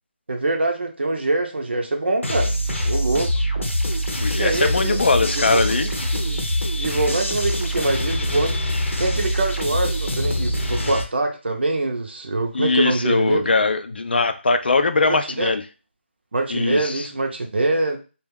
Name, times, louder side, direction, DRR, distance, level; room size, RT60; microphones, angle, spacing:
voice 1, 0.3-2.5 2.8-3.3 4.4-5.0 5.3-5.8 6.3-6.4 6.7-8.6 9.0-13.4 15.1-15.5 16.3-18.0, right 2 dB, 60° right, 3 dB, 0.5 m, -24 dB
sound 1, 2.2-11.0, equal, 85° left, 0.7 m, -24 dB
voice 2, 4.2-5.9 12.5-15.6 16.5-17.1, left 3 dB, 55° left, 9 dB, 0.3 m, -21 dB
2.3 x 2.1 x 3.3 m, 0.33 s
figure-of-eight pair, 170°, 7 cm